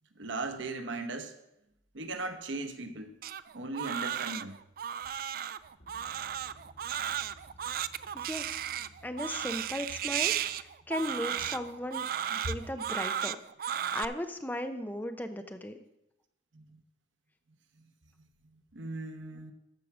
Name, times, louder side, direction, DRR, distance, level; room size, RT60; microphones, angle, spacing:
voice 1, 0.1-1.3 1.9-3.2 3.5-4.6 12.4-12.5 16.5-16.8 17.8-17.9 18.5-19.5, right 2 dB, 90° right, 7 dB, 1.0 m, -38 dB
sound 1, 1.7-1.9 5.8-12.6, equal, 85° left, 2.3 m, -59 dB
Crying sobbing, 3.2-14.0, right 10 dB, 50° right, 0.3 m, -34 dB
voice 2, 8.1-13.4 13.9-15.8, left 1 dB, 10° left, 8 dB, 0.6 m, -37 dB
13.5 x 4.7 x 6.1 m, 0.87 s
head